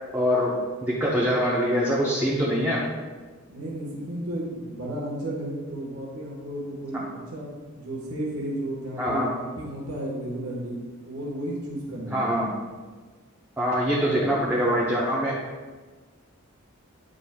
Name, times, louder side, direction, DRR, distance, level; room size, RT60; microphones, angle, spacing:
voice 1, 0.1-2.8 9.0-9.3 12.1-12.5 13.6-15.3, equal, 10° right, -7 dB, 0.8 m, -24 dB
voice 2, 3.5-7.0 7.3-7.5 7.8-10.8 11.0-12.3 14.0-14.8, right 1 dB, 80° right, -4 dB, 1.3 m, -33 dB
8.9 x 5.0 x 2.3 m, 1.4 s
head